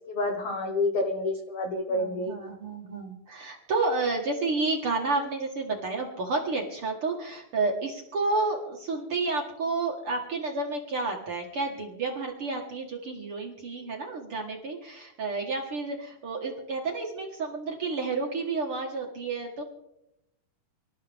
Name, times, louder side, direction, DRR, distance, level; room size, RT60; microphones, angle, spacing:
voice 1, 0.1-2.3, left 2 dB, 80° left, 3 dB, 1.3 m, -28 dB
voice 2, 1.9-19.6, right 3 dB, 60° right, 0 dB, 1.5 m, -30 dB
25.5 x 13.0 x 3.6 m, 0.83 s
omnidirectional pair, 4.9 m